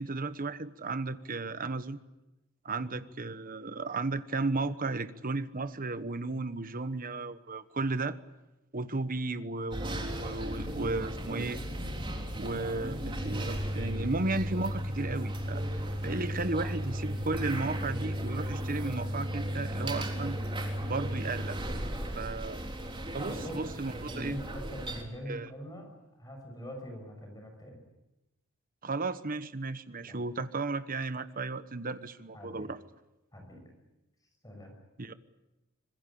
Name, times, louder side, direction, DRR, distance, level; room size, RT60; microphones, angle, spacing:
voice 1, 0.0-2.0 2.6-8.2 8.7-11.6 12.4-20.4 20.8-21.6 22.2-22.6 23.1-24.4 25.3-25.5 28.8-32.8 35.0-35.1, right 3 dB, 45° right, 12 dB, 1.1 m, -34 dB
sound 1, 9.7-25.0, equal, 25° right, 3.7 m, -35 dB
voice 2, 23.3-23.6 24.1-27.8 29.9-30.2 32.3-32.7 33.3-33.6 34.4-34.7, equal, 20° left, 3 dB, 6.1 m, -44 dB
25.0 x 21.0 x 8.7 m, 0.98 s
head